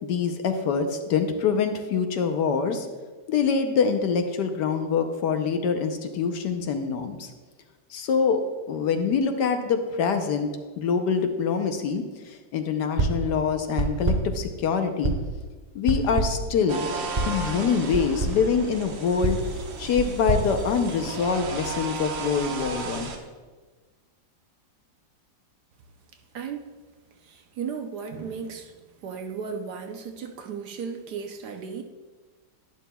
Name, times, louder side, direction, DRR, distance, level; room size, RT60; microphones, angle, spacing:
voice 1, 0.0-2.9 3.3-7.3 7.9-8.4 8.7-10.5 10.8-15.1 15.7-16.8 17.2-19.4 19.8-23.1, left 6 dB, 70° left, 6 dB, 1.2 m, -25 dB
sound 1, 13.0-13.3 13.8-14.4 15.0-15.4 15.9-16.5 17.1-17.4 17.9-18.5 19.2-21.3, right 2 dB, 45° right, 0.5 m, -28 dB
sound 2, 16.7-23.2, right 4 dB, 90° right, 1.7 m, -35 dB
voice 2, 26.3-26.7 27.2-28.7 29.0-31.8, right 6 dB, 70° right, 4 dB, 1.2 m, -35 dB
11.0 x 11.0 x 2.3 m, 1.4 s
omnidirectional pair, 2.0 m